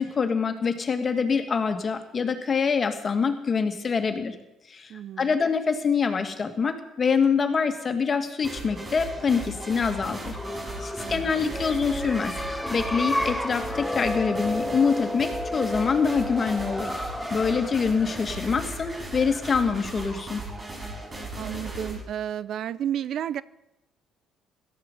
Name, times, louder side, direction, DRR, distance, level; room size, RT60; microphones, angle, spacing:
voice 1, 0.0-4.4 4.7-4.9 5.2-10.4 10.8-12.4 12.7-20.4, left 5 dB, 40° left, 7 dB, 2.3 m, -25 dB
voice 2, 4.9-5.4 11.0-11.5 21.4-23.4, right 10 dB, 65° right, 19 dB, 0.5 m, -32 dB
sound 1, 8.4-22.0, right 2 dB, 30° right, 5.5 m, -37 dB
sound 2, 10.2-19.7, left 1 dB, 5° left, 1.5 m, -32 dB
17.0 x 13.0 x 5.6 m, 0.89 s
supercardioid pair, 60°, 0 cm